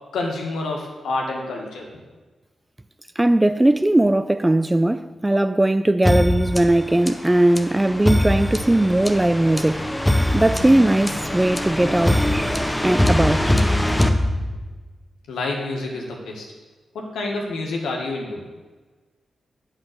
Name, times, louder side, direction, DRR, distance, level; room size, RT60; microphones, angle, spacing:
voice 1, 0.1-1.9 15.3-16.5 16.9-18.4, left 2 dB, 85° left, 1.7 m, -28 dB
voice 2, 3.2-9.9 10.3-12.5 12.8-13.5, right 1 dB, 20° right, 0.4 m, -19 dB
sound 1, 6.0-14.9, left 1 dB, 10° left, 0.9 m, -22 dB
8.1 x 5.5 x 6.7 m
supercardioid pair, 45°, 0 cm